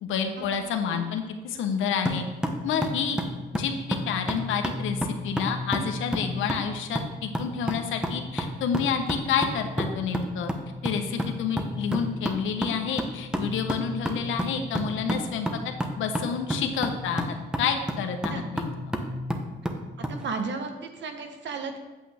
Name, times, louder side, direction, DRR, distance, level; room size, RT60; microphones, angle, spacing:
voice 1, 0.0-2.2 2.6-3.2 3.5-10.5 10.8-18.8, left 7 dB, 80° left, 5 dB, 1.0 m, -29 dB
sound 1, 2.1-20.2, equal, 5° right, 0.9 m, -31 dB
voice 2, 20.1-21.8, right 4 dB, 65° right, 6 dB, 1.2 m, -34 dB
8.4 x 7.7 x 3.5 m, 1.2 s
cardioid pair, 90°, 20 cm